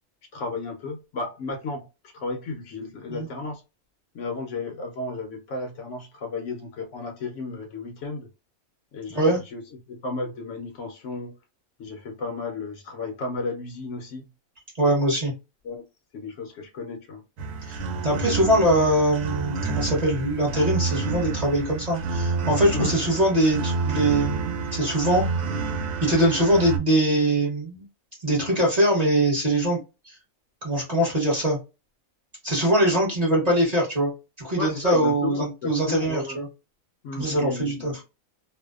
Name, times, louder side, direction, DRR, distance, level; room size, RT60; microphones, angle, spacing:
voice 1, 0.3-1.9 2.1-3.6 4.1-8.3 8.9-9.6 9.9-11.4 11.8-14.3 15.6-15.8 16.1-17.2 22.7-22.9 34.6-36.4 37.0-38.0, left 3 dB, 70° left, 0.8 m, -33 dB
voice 2, 14.8-15.3 17.7-25.2 26.0-27.8 28.2-30.1 30.6-31.6 32.4-34.1 34.4-36.5 37.2-38.0, right 1 dB, 35° right, 0.9 m, -22 dB
sound 1, 17.4-26.8, right 4 dB, 75° right, 1.0 m, -29 dB
2.5 x 2.1 x 2.3 m
omnidirectional pair, 1.5 m